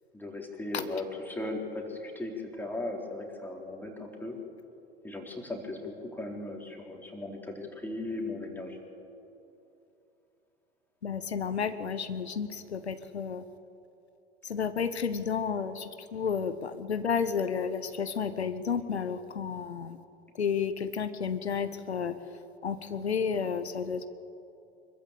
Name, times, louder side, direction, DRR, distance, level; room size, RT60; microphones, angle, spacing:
voice 1, 0.1-4.4 5.0-8.8, left 2 dB, 5° left, 0 dB, 3.8 m, -37 dB
voice 2, 11.0-13.4 14.4-20.0 20.3-22.2 22.6-24.1, left 6 dB, 85° left, 11 dB, 0.9 m, -31 dB
25.0 x 14.0 x 8.5 m, 2.8 s
figure-of-eight pair, 85°, 32 cm